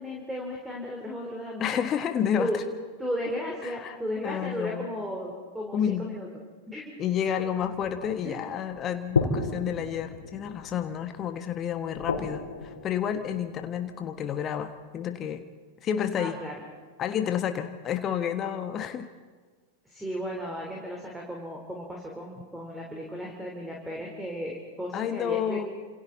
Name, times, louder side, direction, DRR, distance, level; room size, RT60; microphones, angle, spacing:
voice 1, 0.0-1.8 2.4-2.6 3.0-6.3 6.7-6.9 8.2-8.4 16.2-16.5 19.9-25.7, equal, 5° right, -1 dB, 3.7 m, -35 dB
voice 2, 1.6-2.6 3.6-4.0 4.2-4.9 5.7-6.1 7.0-15.4 15.8-16.4 17.0-19.1 24.9-25.7, left 9 dB, 30° left, 8 dB, 1.3 m, -30 dB
sound 1, 7.0-14.9, left 4 dB, 70° left, 3.4 m, -35 dB
30.0 x 27.0 x 4.1 m, 1.4 s
figure-of-eight pair, 90°, 0 cm